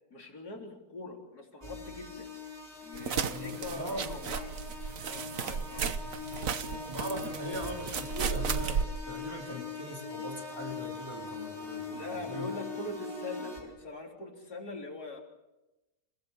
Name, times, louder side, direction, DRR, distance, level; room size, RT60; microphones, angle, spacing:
voice 1, 0.1-2.3 2.8-4.6 5.0-5.9 9.5-9.7 11.9-15.2, left 2 dB, 85° left, 0 dB, 4.2 m, -42 dB
sound 1, 1.6-13.6, left 5 dB, 30° right, 6.0 m, -42 dB
sound 2, 3.0-8.9, right 7 dB, 65° right, 1.4 m, -34 dB
voice 2, 3.1-4.1 6.9-12.5, equal, 15° right, 0 dB, 4.0 m, -40 dB
29.0 x 17.0 x 7.3 m, 1.0 s
omnidirectional pair, 1.6 m